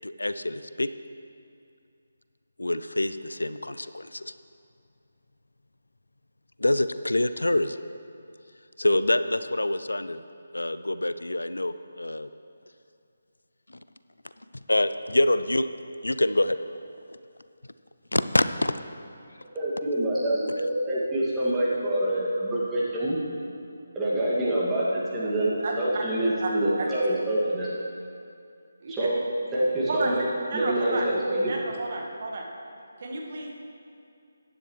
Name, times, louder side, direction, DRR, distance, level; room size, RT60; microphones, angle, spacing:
voice 1, 0.0-0.9 2.6-4.3 6.6-7.8 8.8-10.2 10.5-12.3 14.7-15.7 16.0-16.6 18.1-18.7, left 1 dB, 80° left, 12 dB, 0.4 m, -26 dB
voice 2, 19.5-23.2 24.0-27.7 28.9-29.2 29.5-30.3 30.5-31.5, right 1 dB, 10° right, -8 dB, 2.1 m, -26 dB
voice 3, 25.6-26.0 26.4-26.5 26.8-26.9 28.8-29.1 29.9-30.2 30.5-31.0 31.5-32.4 33.0-33.5, right 3 dB, 45° right, -1 dB, 1.7 m, -31 dB
15.0 x 9.9 x 3.2 m, 2.5 s
figure-of-eight pair, 150°, 0 cm